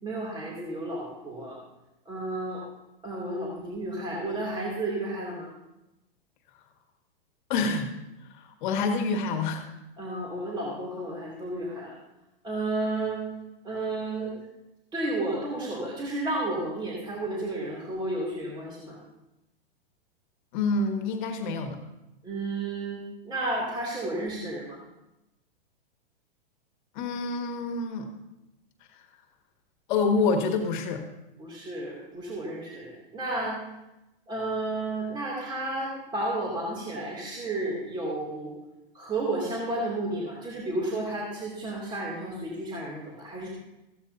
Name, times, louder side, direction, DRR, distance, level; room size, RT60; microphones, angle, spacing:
voice 1, 0.0-1.6 2.0-2.6 3.0-5.5 10.0-11.9 12.4-13.2 13.6-14.4 14.9-19.0 22.2-24.8 31.4-33.6 34.3-38.5 38.9-43.5, right 2 dB, 15° right, -4 dB, 2.8 m, -32 dB
voice 2, 7.5-7.9 8.4-9.6 20.5-21.8 27.0-28.1 28.9-29.0 29.9-31.0, left 4 dB, 55° left, 4 dB, 1.8 m, -27 dB
15.0 x 12.5 x 2.8 m, 0.94 s
hypercardioid pair, 130°, 29 cm